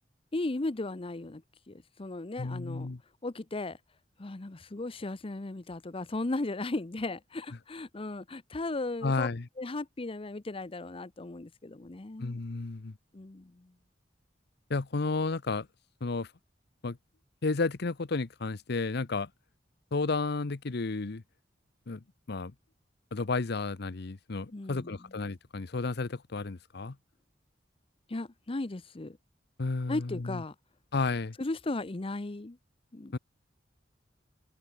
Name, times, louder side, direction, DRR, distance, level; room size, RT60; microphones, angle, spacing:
voice 1, 0.3-2.9 3.2-3.8 4.2-9.3 9.6-12.4 13.1-13.7 24.5-24.9 28.1-29.2 29.9-30.5 31.4-32.6 32.9-33.2, left 2 dB, 30° left, 0.7 m, -36 dB
voice 2, 2.4-3.0 9.0-9.5 12.2-13.0 14.7-15.7 16.0-16.3 16.8-17.0 17.4-19.3 19.9-21.2 21.9-22.5 23.1-27.0 29.6-30.4 30.9-31.3 33.1-33.2, left 3 dB, 60° left, 0.8 m, -32 dB
head